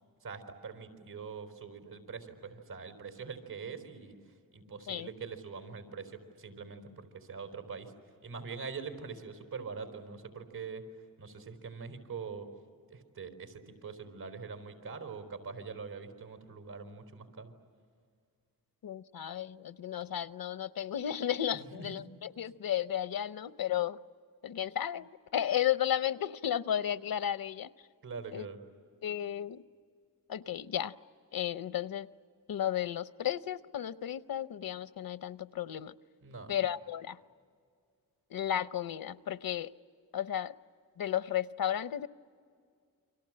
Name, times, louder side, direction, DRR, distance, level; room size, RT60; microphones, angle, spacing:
voice 1, 0.2-4.2 4.5-7.9 8.2-10.8 11.2-12.5 12.9-17.5 21.6-22.0 28.0-28.6 36.2-36.6, right 5 dB, 90° right, 6 dB, 4.2 m, -43 dB
voice 2, 18.8-24.0 24.4-27.7 28.3-28.5 29.0-29.6 30.3-30.9 31.3-32.1 32.5-35.9 36.5-37.2 38.3-39.7 40.1-40.5 41.0-42.1, left 10 dB, 80° left, 15 dB, 0.7 m, -33 dB
30.0 x 24.5 x 7.7 m, 2.2 s
wide cardioid pair, 90°, 35 cm